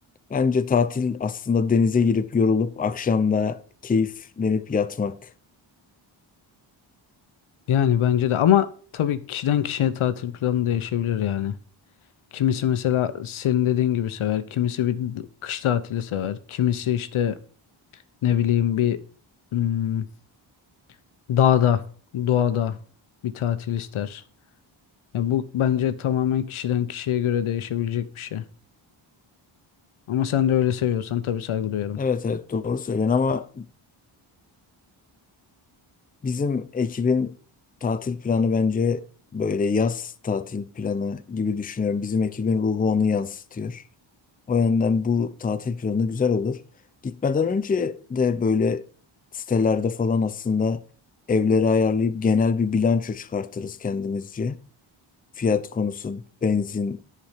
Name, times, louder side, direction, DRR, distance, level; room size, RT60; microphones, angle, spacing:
voice 1, 0.3-5.3 32.0-33.7 36.2-37.3 37.8-39.0 39.3-43.8 44.5-46.6 47.0-48.8 49.3-50.8 51.3-54.6 55.4-57.0, left 5 dB, 20° left, 0.5 m, -24 dB
voice 2, 7.7-11.6 12.3-17.4 18.2-19.0 19.5-20.1 21.3-21.8 22.1-22.8 23.2-24.2 25.1-28.4 30.1-32.0, left 10 dB, 85° left, 0.9 m, -23 dB
10.5 x 4.8 x 5.7 m
wide cardioid pair, 140°, 48 cm